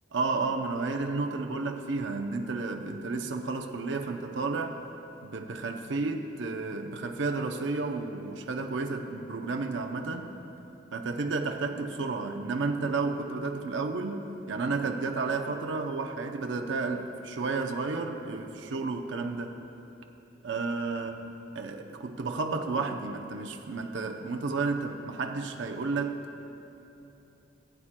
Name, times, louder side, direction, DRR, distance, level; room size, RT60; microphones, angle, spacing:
voice 1, 0.1-4.8 5.2-10.3 10.9-14.2 14.5-19.5 20.4-21.2 21.6-26.2, right 3 dB, 75° right, 4 dB, 0.6 m, -32 dB
20.0 x 8.6 x 2.2 m, 3.0 s
head